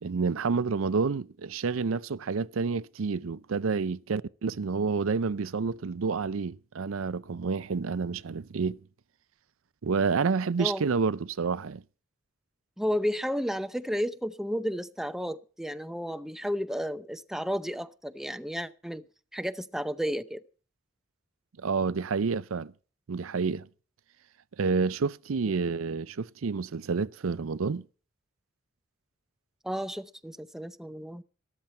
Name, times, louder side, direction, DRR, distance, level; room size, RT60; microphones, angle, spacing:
voice 1, 0.0-8.8 9.8-11.8 21.6-22.7 23.1-23.7 24.6-27.8, right 5 dB, 80° right, 0.5 m, -29 dB
voice 2, 12.8-19.0 19.3-20.4 29.6-31.2, equal, ahead, 0.6 m, -32 dB
13.5 x 13.5 x 4.4 m
head